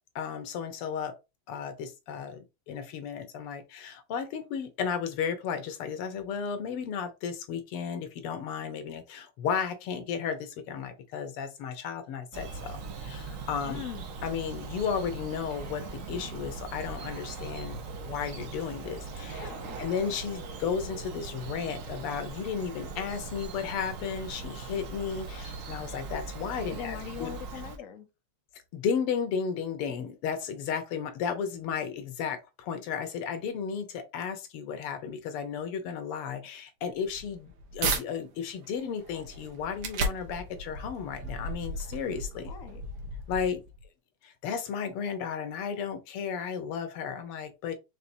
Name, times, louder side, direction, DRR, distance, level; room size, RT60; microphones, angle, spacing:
voice 1, 0.2-1.2 1.5-13.8 14.2-19.5 19.8-27.3 28.7-42.5 43.3-43.6 44.2-47.8, left 7 dB, 90° left, 1.8 m, -34 dB
Bird vocalization bird call bird song, 12.3-27.8, right 4 dB, 60° right, 0.8 m, -40 dB
voice 2, 13.7-14.1 19.4-19.8 26.7-28.1 42.5-42.8, left 9 dB, 55° left, 0.9 m, -41 dB
sound 1, 36.9-38.0 38.6-43.8, right 2 dB, 90° right, 2.0 m, -35 dB
5.6 x 3.4 x 2.7 m
omnidirectional pair, 2.4 m